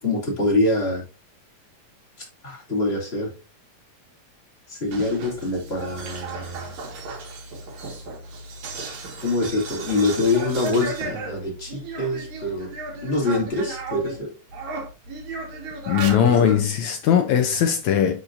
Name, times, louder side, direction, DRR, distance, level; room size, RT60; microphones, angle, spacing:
voice 1, 0.0-1.0 2.4-3.3 4.7-6.7 9.2-12.7 13.0-14.3 16.1-16.4, left 2 dB, 20° left, 2.3 m, -25 dB
sound 1, 4.8-14.2 14.5-16.6, right 3 dB, 60° right, 2.9 m, -35 dB
voice 2, 15.9-18.2, left 8 dB, 75° left, 1.7 m, -19 dB
11.5 x 4.3 x 2.6 m
omnidirectional pair, 4.0 m